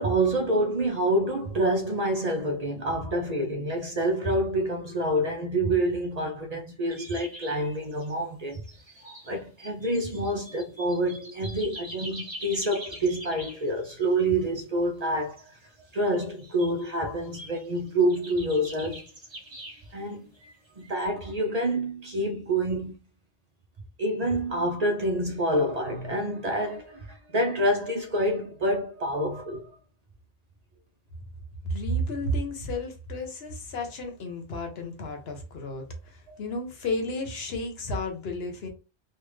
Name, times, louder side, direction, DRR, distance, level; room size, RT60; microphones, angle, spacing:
voice 1, 0.0-8.6 9.3-15.5 15.9-19.0 19.9-20.3 20.8-22.9 24.0-29.7 36.3-36.4, right 1 dB, 45° right, 0.6 m, -27 dB
sound 1, 6.9-8.2 8.5-14.1 14.4-14.6 15.2-16.8 17.2-20.0 20.3-21.1, right 1 dB, 30° right, 1.0 m, -44 dB
voice 2, 31.6-35.8 36.4-38.7, left 1 dB, 80° left, 1.1 m, -32 dB
3.4 x 2.3 x 3.1 m
omnidirectional pair, 1.0 m